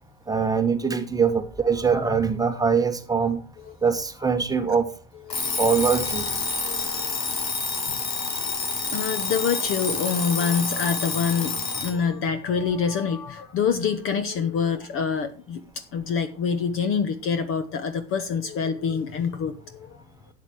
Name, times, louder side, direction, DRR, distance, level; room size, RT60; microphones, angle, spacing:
voice 1, 0.3-3.4 3.8-4.9 5.6-6.3, right 5 dB, 5° right, 1.3 m, -23 dB
Alarm, 5.3-12.0, left 4 dB, 80° left, 2.1 m, -28 dB
voice 2, 5.3-5.6 6.5-7.0 7.9-8.0 8.9-20.0, left 6 dB, 25° left, 1.0 m, -26 dB
12.5 x 8.6 x 4.7 m
figure-of-eight pair, 95°, 49 cm